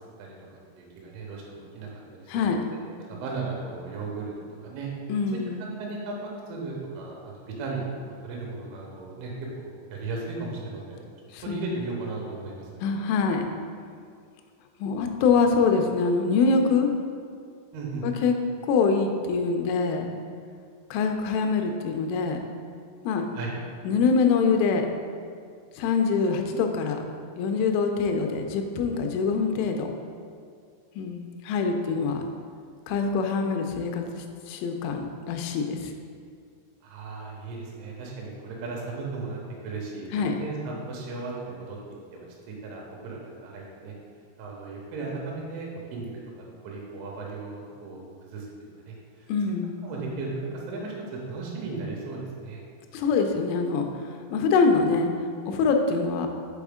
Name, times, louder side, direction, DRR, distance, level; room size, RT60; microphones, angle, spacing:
voice 1, 0.8-2.8 3.1-4.3 4.6-4.9 5.6-6.2 6.5-7.9 8.2-11.0 11.4-12.7 17.7-18.1 23.4-23.5 36.8-41.8 42.1-44.0 44.4-46.1 46.4-49.3 49.8-52.6, right 3 dB, 85° right, -2 dB, 3.5 m, -36 dB
voice 2, 5.1-5.7 11.3-11.6 12.8-13.5 14.8-16.9 18.0-18.3 18.6-20.1 20.9-22.4 23.0-23.2 23.9-24.9 25.8-27.0 27.4-29.9 31.0-32.3 32.9-35.9 40.1-40.4 49.3-49.8 52.9-53.9 54.3-55.1 55.5-56.3, left 5 dB, 90° left, 4 dB, 3.1 m, -24 dB
8.0 x 4.2 x 3.6 m, 2.2 s
omnidirectional pair, 5.5 m